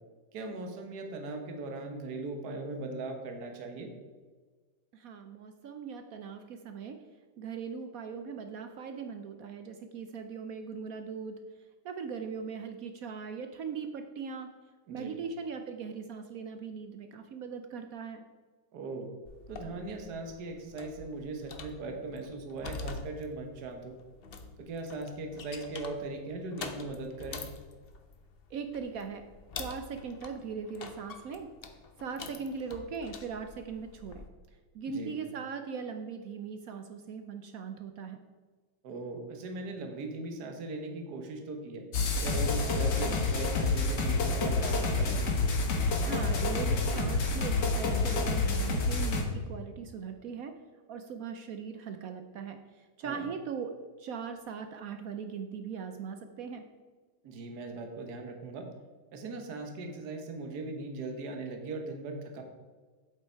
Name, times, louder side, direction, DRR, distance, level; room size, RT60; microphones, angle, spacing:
voice 1, 0.3-3.9 14.9-15.1 18.7-19.1 19.5-23.9 24.6-27.4 34.9-35.1 38.8-41.8 42.2-45.2 53.0-53.2 57.2-58.7 59.1-62.4, right 3 dB, 55° right, 4 dB, 1.6 m, -39 dB
voice 2, 4.9-7.1 7.4-11.4 11.8-14.5 14.9-18.2 28.5-29.2 29.5-31.5 32.0-34.2 34.7-38.2 46.0-50.6 50.9-56.7, right 6 dB, 75° right, 7 dB, 0.8 m, -40 dB
sound 1, 19.3-34.3, left 4 dB, 75° left, 0.5 m, -46 dB
sound 2, 41.9-49.2, left 3 dB, 60° left, 1.9 m, -28 dB
8.2 x 8.0 x 4.5 m, 1.4 s
omnidirectional pair, 2.2 m